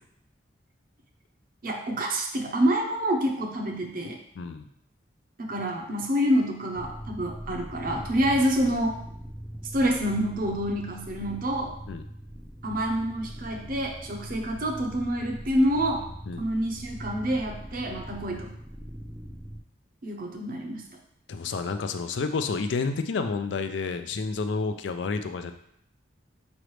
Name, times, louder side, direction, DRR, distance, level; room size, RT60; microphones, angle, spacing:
voice 1, 1.6-4.2 5.4-9.0 9.7-11.8 12.6-16.1 16.4-18.5 20.0-20.8, equal, 50° right, 1 dB, 0.7 m, -27 dB
voice 2, 4.4-4.7 11.9-12.0 16.3-16.4 21.3-25.5, left 4 dB, 75° left, 9 dB, 0.4 m, -30 dB
sound 1, 6.7-19.6, equal, ahead, 0.4 m, -41 dB
5.0 x 3.1 x 3.1 m, 0.71 s
head